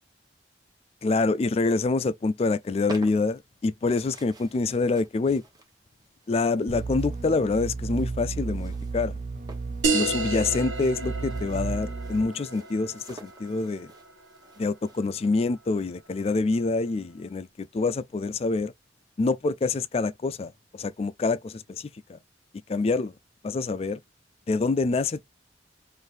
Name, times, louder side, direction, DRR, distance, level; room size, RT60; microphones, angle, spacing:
voice 1, 1.0-5.4 6.3-9.1 9.9-13.9 14.6-18.7 19.2-22.2 22.7-23.1 23.4-24.0 24.5-25.2, left 3 dB, 35° left, 0.3 m, -26 dB
sound 1, 2.5-15.3, right 2 dB, 20° right, 1.0 m, -50 dB
sound 2, 6.7-12.2, right 4 dB, 45° right, 0.5 m, -33 dB
sound 3, 9.8-14.9, right 4 dB, 85° right, 1.0 m, -32 dB
3.2 x 2.6 x 4.4 m
head